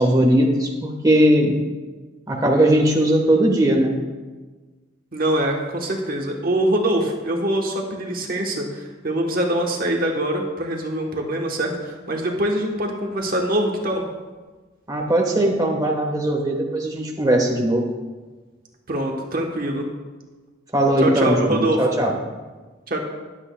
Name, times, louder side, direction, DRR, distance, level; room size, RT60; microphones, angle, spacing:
voice 1, 0.0-1.6 2.3-3.9 14.9-17.9 20.7-22.2, right 1 dB, 20° right, 0 dB, 1.2 m, -19 dB
voice 2, 5.1-14.0 18.9-19.9 21.0-21.8 22.9-23.0, right 1 dB, 45° right, 1 dB, 1.1 m, -23 dB
20.0 x 8.2 x 2.3 m, 1.3 s
head